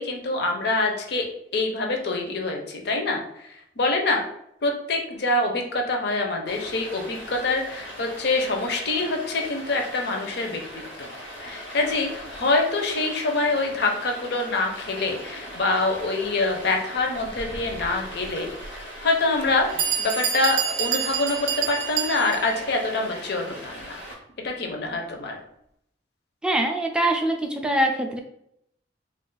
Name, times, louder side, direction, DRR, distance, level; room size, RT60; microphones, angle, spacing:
voice 1, 0.0-4.2 4.6-11.1 11.4-18.5 19.0-19.7 20.0-24.0 24.4-25.4, left 2 dB, 60° left, 2 dB, 0.6 m, -25 dB
Stream, 6.5-24.1, equal, 85° left, 1.0 m, -40 dB
Bell, 18.6-18.7 19.4-19.5 19.8-22.6, right 8 dB, 75° right, 0.4 m, -27 dB
voice 2, 26.4-28.2, right 1 dB, 5° right, 2 dB, 0.3 m, -23 dB
2.4 x 2.3 x 3.8 m, 0.74 s
head